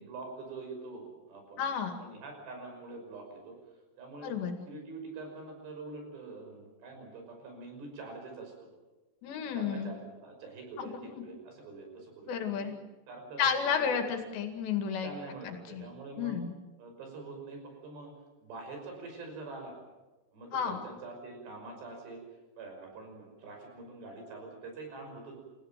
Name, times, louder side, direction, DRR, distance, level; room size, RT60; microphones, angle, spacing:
voice 1, 0.1-1.7 2.0-3.6 4.0-4.3 4.7-8.7 9.5-12.7 13.1-13.8 14.3-14.4 15.0-16.4 16.8-18.1 18.4-19.8 20.3-22.2 22.6-25.3, right 3 dB, 80° right, 3 dB, 7.9 m, -45 dB
voice 2, 1.6-1.9 4.2-4.6 9.2-9.9 10.8-11.2 12.3-12.8 13.4-15.1 15.4-15.9 16.2-16.5 20.5-20.8, left 7 dB, 85° left, 6 dB, 4.5 m, -32 dB
30.0 x 16.0 x 7.7 m, 1.2 s
omnidirectional pair, 4.8 m